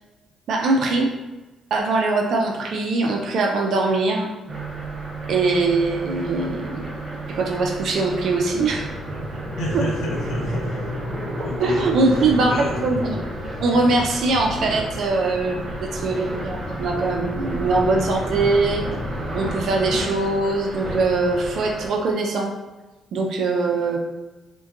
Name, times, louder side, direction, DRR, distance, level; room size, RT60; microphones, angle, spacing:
voice 1, 0.5-1.1 1.7-4.3 5.3-7.0 7.4-8.8 9.7-9.8 11.6-12.5 12.8-13.2 13.6-18.8 19.3-22.5 23.1-24.0, right 3 dB, 70° right, 1 dB, 0.4 m, -22 dB
sound 1, 4.5-21.9, right 1 dB, 45° right, 0.9 m, -30 dB
voice 2, 9.6-11.1 11.4-12.9, left 1 dB, 85° left, -3 dB, 0.8 m, -31 dB
3.6 x 2.2 x 2.4 m, 1.1 s
cardioid pair, 90°, 0 cm